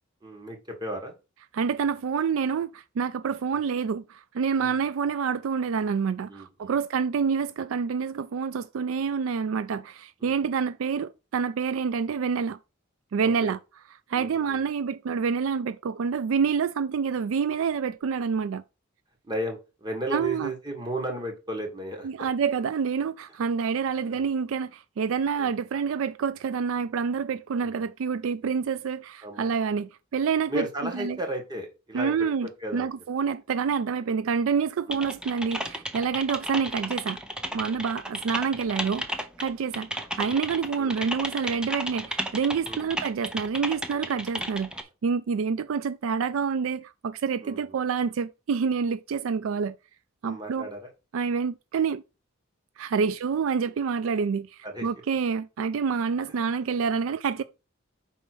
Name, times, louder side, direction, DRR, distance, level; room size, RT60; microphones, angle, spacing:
voice 1, 0.2-1.2 3.5-3.6 4.6-4.8 6.3-6.8 10.2-10.3 13.2-13.5 14.1-14.6 19.2-22.3 24.0-24.2 25.4-25.5 27.5-27.9 29.2-29.5 30.5-32.1 32.4-32.9 34.9-35.1 40.8-41.0 42.6-42.9 47.4-47.8 50.2-50.9 54.6-54.9 56.2-56.4, right 1 dB, 20° right, 1.8 m, -35 dB
voice 2, 1.5-12.6 13.1-13.6 14.1-18.6 20.1-20.5 22.0-31.2 31.9-37.2 37.5-44.7 45.0-49.7 50.2-50.7 51.1-52.0 52.8-57.4, right 6 dB, 70° right, 0.4 m, -27 dB
Typing, 34.9-44.8, equal, 5° right, 0.7 m, -34 dB
5.4 x 4.2 x 6.1 m
head